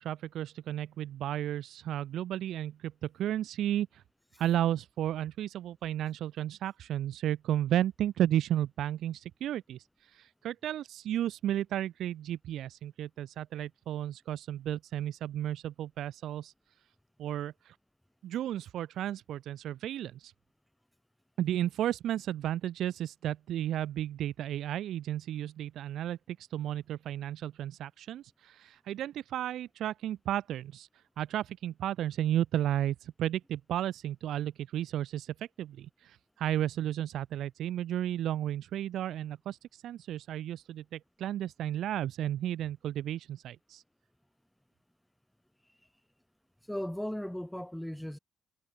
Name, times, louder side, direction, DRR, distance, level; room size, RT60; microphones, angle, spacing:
voice 1, 0.0-4.0 4.4-9.8 10.1-16.5 17.2-17.7 18.2-20.3 21.4-30.9 31.2-43.8, right 12 dB, 75° right, 0.5 m, -33 dB
voice 2, 46.7-48.2, equal, 5° left, 2.0 m, -36 dB
cardioid pair, 90°, 0 cm